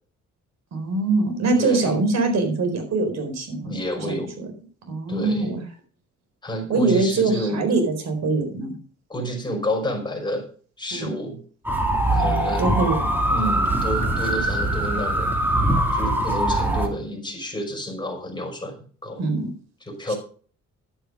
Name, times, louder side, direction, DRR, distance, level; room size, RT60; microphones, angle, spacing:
voice 1, 0.7-3.7 4.1-4.3 4.9-5.7 6.7-8.7 10.9-11.1 12.2-13.0 19.2-19.5 20.1-20.2, right 3 dB, 60° right, 5 dB, 4.4 m, -23 dB
voice 2, 1.6-1.9 3.6-4.3 5.1-5.5 6.4-7.6 9.1-10.5 10.8-11.4 12.1-12.8 13.3-15.4 15.9-18.8 19.0-19.2 19.8-20.2, equal, 15° left, 1 dB, 5.4 m, -29 dB
sound 1, 11.6-16.9, right 1 dB, 5° right, 2.9 m, -22 dB
11.0 x 8.7 x 5.0 m, 0.43 s
cardioid pair, 90°, 30 cm